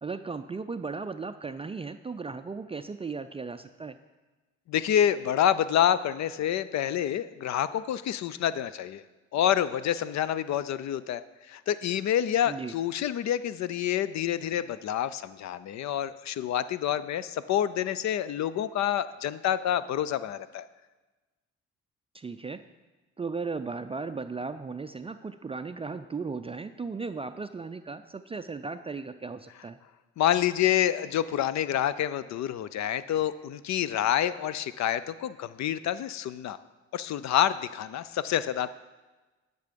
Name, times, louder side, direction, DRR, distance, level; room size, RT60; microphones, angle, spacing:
voice 1, 0.0-4.0 12.5-12.7 22.1-22.6 23.2-29.8, right 4 dB, 20° right, 9 dB, 0.4 m, -36 dB
voice 2, 4.7-9.0 9.3-11.2 11.5-20.7 30.2-36.6 36.9-38.7, left 10 dB, 65° left, 15 dB, 0.5 m, -27 dB
11.5 x 6.8 x 5.1 m, 1.2 s
cardioid pair, 90°, 30 cm